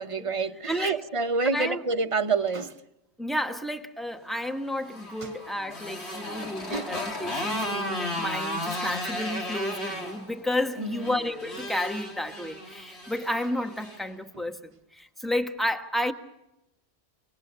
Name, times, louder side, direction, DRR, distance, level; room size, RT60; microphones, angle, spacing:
voice 1, 0.0-2.8 5.2-5.3 6.4-6.9 7.6-7.7 10.8-11.2, right 4 dB, 30° right, 0.9 m, -28 dB
voice 2, 0.7-1.0 1.5-1.8 3.2-16.1, left 1 dB, ahead, 1.3 m, -31 dB
Motorcycle, 4.6-14.0, left 1 dB, 85° left, 3.8 m, -34 dB
29.0 x 19.0 x 6.8 m
omnidirectional pair, 1.1 m